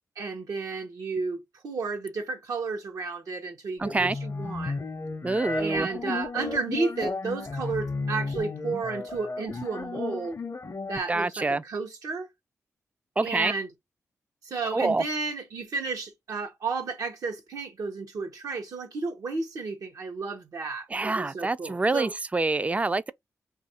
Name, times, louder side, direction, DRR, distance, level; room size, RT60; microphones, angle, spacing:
voice 1, 0.2-4.8 5.6-10.4 10.9-12.3 13.2-13.7 14.4-22.1, right 4 dB, 75° right, 0.7 m, -32 dB
sound 1, 3.8-11.0, left 3 dB, 50° left, 0.6 m, -34 dB
voice 2, 3.8-4.2 5.2-5.9 11.1-11.6 13.2-13.5 14.7-15.0 20.9-23.1, right 3 dB, 25° right, 0.3 m, -26 dB
2.6 x 2.4 x 4.1 m
cardioid pair, 55°, 6 cm